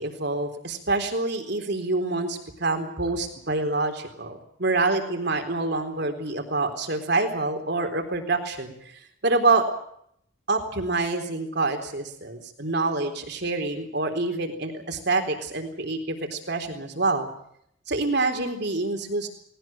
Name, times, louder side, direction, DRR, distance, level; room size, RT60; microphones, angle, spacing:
voice 1, 0.0-8.7 9.2-9.6 10.5-17.3 17.9-19.3, right 3 dB, 60° right, 5 dB, 3.9 m, -26 dB
19.5 x 18.5 x 8.9 m, 0.70 s
head